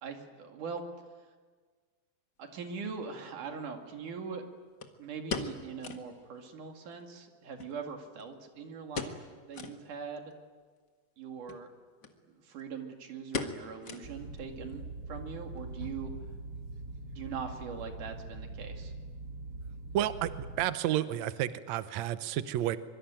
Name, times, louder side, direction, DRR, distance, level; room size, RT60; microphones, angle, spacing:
voice 1, 0.0-0.8 2.4-4.4 5.0-10.3 11.2-11.7 12.1-14.8 15.1-16.1 17.1-18.9, right 5 dB, 55° right, 4 dB, 3.7 m, -41 dB
sound 1, 2.7-2.8 4.8-6.1 6.5-6.6 6.8-6.9 7.6-8.4 8.9-9.3 9.5-9.8 10.3-10.4 11.4-11.6 12.0-12.1 12.4-12.8 13.3-14.4 14.7-14.8 15.4-15.7 16.0-16.1, left 4 dB, 50° left, 1.2 m, -39 dB
sound 2, 14.0-20.7, right 2 dB, 35° right, 1.7 m, -43 dB
voice 2, 19.9-22.8, right 12 dB, 85° right, 11 dB, 1.6 m, -31 dB
25.0 x 24.0 x 9.1 m, 1.5 s
omnidirectional pair, 4.5 m